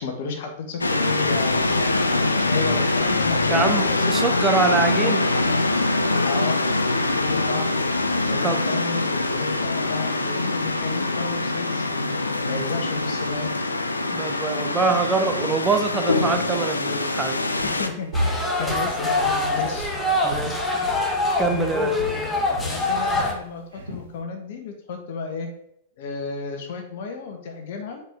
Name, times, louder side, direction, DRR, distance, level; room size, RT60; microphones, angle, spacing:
voice 1, 0.0-4.6 4.9-5.1 6.2-6.6 7.0-7.7 8.1-13.5 17.6-19.9 20.3-20.5 21.0-21.2 21.5-22.3 22.6-25.5 26.0-28.0, left 4 dB, 60° left, 4 dB, 1.4 m, -33 dB
sound 1, 0.8-17.9, left 2 dB, 85° left, 0.6 m, -23 dB
voice 2, 3.5-5.2 8.4-8.6 14.1-17.4 20.2-20.6 21.4-21.9, right 4 dB, 15° right, 5 dB, 0.8 m, -24 dB
Walk footsteps, 17.6-17.9 18.1-21.2 21.4-21.7 22.0-23.4 23.7-24.1, equal, 75° right, 2.5 m, -32 dB
sound 2, 18.1-23.3, left 2 dB, 15° left, 1.5 m, -24 dB
7.4 x 4.8 x 3.6 m, 0.75 s
figure-of-eight pair, 100°, 0 cm